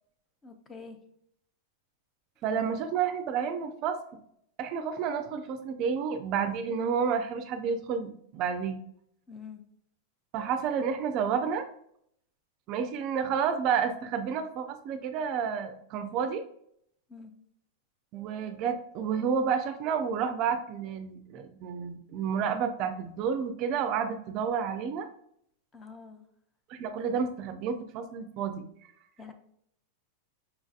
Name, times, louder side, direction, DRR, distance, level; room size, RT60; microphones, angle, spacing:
voice 1, 0.4-1.0 2.4-2.7 9.3-9.6 17.1-17.3 25.7-26.2 29.2-29.3, left 5 dB, 15° left, 6 dB, 0.4 m, -46 dB
voice 2, 2.4-4.0 4.6-8.8 10.3-11.6 12.7-16.4 18.1-25.1 26.7-28.6, right 7 dB, 40° right, 8 dB, 0.4 m, -30 dB
5.7 x 2.6 x 2.4 m, 0.70 s
supercardioid pair, 155°, 0 cm